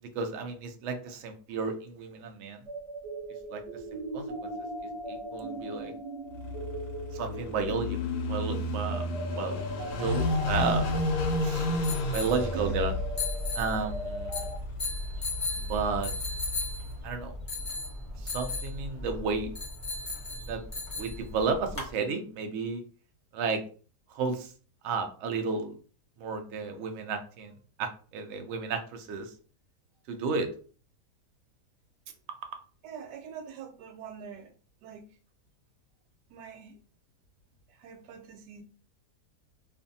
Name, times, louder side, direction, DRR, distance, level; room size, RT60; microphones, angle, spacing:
voice 1, 0.1-2.6 3.5-3.6 3.9-4.5 5.1-5.9 7.1-8.0 8.3-9.1 9.4-9.6 10.0-10.9 11.4-12.9 13.6-14.5 15.6-16.1 17.0-17.4 18.2-19.5 20.4-20.6 21.0-22.8 23.3-23.6 24.1-24.5 24.8-25.7 26.2-27.5 27.8-29.3 30.1-30.5, right 4 dB, 70° right, 0.6 m, -32 dB
sound 1, 2.7-14.5, left 1 dB, 30° right, 0.7 m, -38 dB
Car passing by / Idling, 6.3-17.0, left 1 dB, 85° left, 1.2 m, -33 dB
sound 2, 10.3-21.9, left 2 dB, 30° left, 0.6 m, -36 dB
voice 2, 32.8-34.5 34.8-35.0 36.3-36.8 37.7-38.6, right 7 dB, 90° right, 1.2 m, -44 dB
2.5 x 2.5 x 2.6 m
omnidirectional pair, 1.7 m